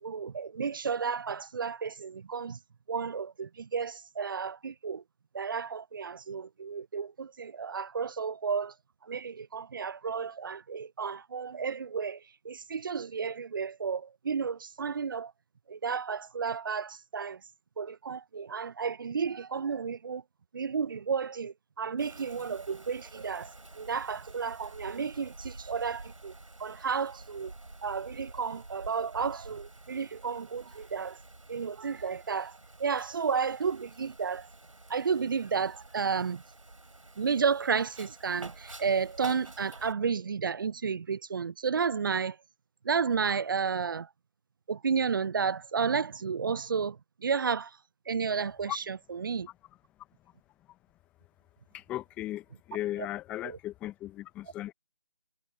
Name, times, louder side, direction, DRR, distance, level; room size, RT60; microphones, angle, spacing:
voice 1, 0.0-2.6 2.9-5.0 5.3-8.7 9.0-15.3 15.7-17.4 17.8-20.2 20.5-26.3 26.6-27.5 27.8-31.2 31.5-34.5 34.9-36.4 37.2-42.4 42.8-44.1 44.7-47.8 48.1-49.5 53.4-53.6, right 6 dB, 40° right, 0.6 m, -32 dB
Wind, 22.0-39.9, right 2 dB, 80° right, 5.1 m, -49 dB
voice 2, 51.7-54.7, left 14 dB, 5° left, 0.7 m, -37 dB
figure-of-eight pair, 155°, 16 cm